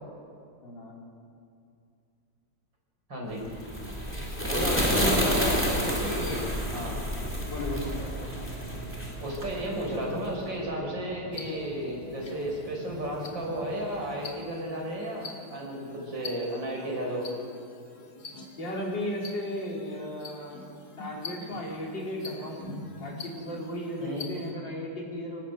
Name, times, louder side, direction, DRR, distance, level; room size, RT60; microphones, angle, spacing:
voice 1, 0.6-1.1 4.3-5.4 7.5-7.9 18.6-20.6 21.0-22.6 23.0-25.4, left 1 dB, 75° left, -2 dB, 5.1 m, -35 dB
voice 2, 3.1-3.4 4.4-6.4 6.7-7.0 8.0-8.1 9.2-17.3 24.0-24.3, right 1 dB, 80° right, -1 dB, 6.3 m, -33 dB
sound 1, 3.4-10.1, equal, 5° left, 3.7 m, -29 dB
sound 2, 5.8-14.2, left 2 dB, 30° right, 7.4 m, -47 dB
Watch Tick, 11.3-24.5, left 2 dB, 55° left, 3.0 m, -45 dB
26.0 x 19.0 x 8.2 m, 2.5 s
omnidirectional pair, 2.0 m